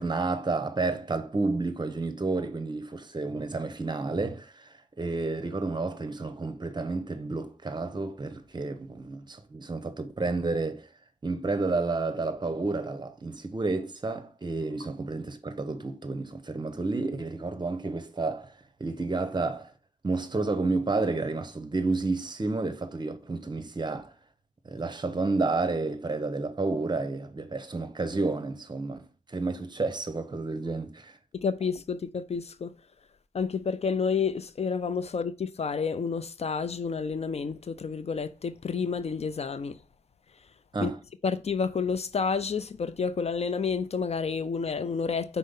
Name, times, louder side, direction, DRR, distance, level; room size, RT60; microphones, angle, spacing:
voice 1, 0.0-4.7 5.0-10.9 11.2-18.5 18.8-19.7 20.0-24.1 24.6-31.2 40.7-41.0, right 3 dB, 35° right, 0.9 m, -30 dB
voice 2, 31.4-32.7 33.3-39.8 40.8-40.9 41.2-45.4, left 5 dB, 55° left, 0.5 m, -30 dB
5.5 x 4.2 x 5.3 m
wide cardioid pair, 75°, 13 cm